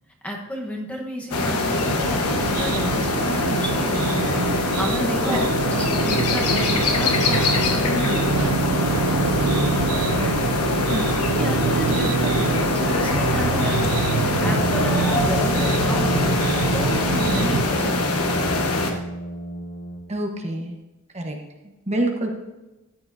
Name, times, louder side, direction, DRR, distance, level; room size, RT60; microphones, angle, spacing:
voice 1, 0.2-4.2 4.6-8.9 10.6-11.1 11.4-16.4 16.7-18.8, equal, 5° left, -1 dB, 1.1 m, -32 dB
sound 1, 1.3-18.9, left 3 dB, 80° left, 1.2 m, -23 dB
sound 2, 1.8-17.7, right 6 dB, 85° right, 0.4 m, -26 dB
voice 2, 10.1-10.4 10.9-11.0 20.1-20.8 21.1-21.4 21.9-22.3, right 1 dB, 30° right, 2 dB, 1.2 m, -26 dB
Brass instrument, 14.3-20.2, equal, 35° left, 1.1 m, -29 dB
13.5 x 9.7 x 2.7 m, 1.1 s
head